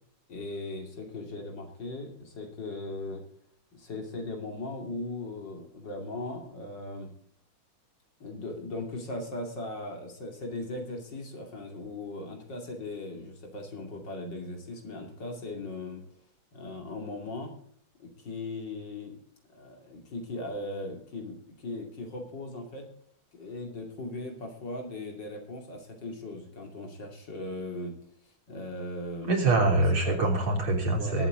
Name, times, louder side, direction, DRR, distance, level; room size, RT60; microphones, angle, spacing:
voice 1, 0.3-3.2 3.7-7.1 8.2-16.0 16.5-17.5 18.0-19.2 19.5-22.9 23.3-27.9 28.5-29.3 30.0-30.2 30.8-31.3, left 2 dB, 55° left, 3 dB, 3.2 m, -38 dB
voice 2, 29.3-31.3, right 2 dB, 80° right, 1 dB, 4.0 m, -24 dB
21.5 x 8.4 x 3.8 m, 0.62 s
omnidirectional pair, 2.4 m